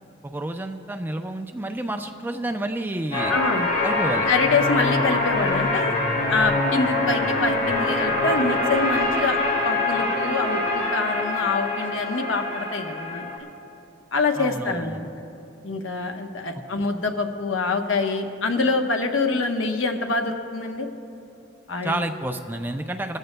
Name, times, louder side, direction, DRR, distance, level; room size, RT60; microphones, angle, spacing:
voice 1, 0.2-3.3 3.8-4.3 14.4-15.1 21.8-23.2, right 1 dB, 10° right, 6 dB, 0.4 m, -29 dB
sound 1, 3.1-13.4, left 2 dB, 40° left, 2.2 m, -24 dB
voice 2, 3.3-3.7 4.3-5.9 6.3-9.4 9.6-13.3 14.1-15.1 15.6-20.9 21.7-22.0, left 3 dB, 85° left, 4 dB, 1.0 m, -25 dB
20.5 x 14.5 x 2.2 m, 2.7 s
head